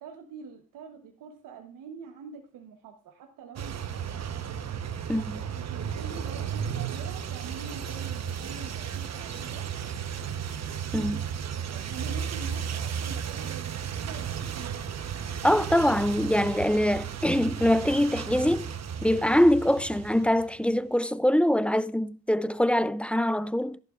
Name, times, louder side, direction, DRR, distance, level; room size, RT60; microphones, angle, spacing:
voice 1, 0.0-4.3 5.5-9.7 10.7-13.7 14.0-14.8, right 6 dB, 80° right, 1.1 m, -45 dB
sound 1, 3.6-20.6, right 8 dB, 55° right, 1.0 m, -34 dB
voice 2, 5.1-5.4 10.9-11.2 15.4-18.7 19.0-23.8, left 1 dB, 5° left, 0.4 m, -24 dB
13.0 x 11.0 x 2.5 m
supercardioid pair, 60°, 32 cm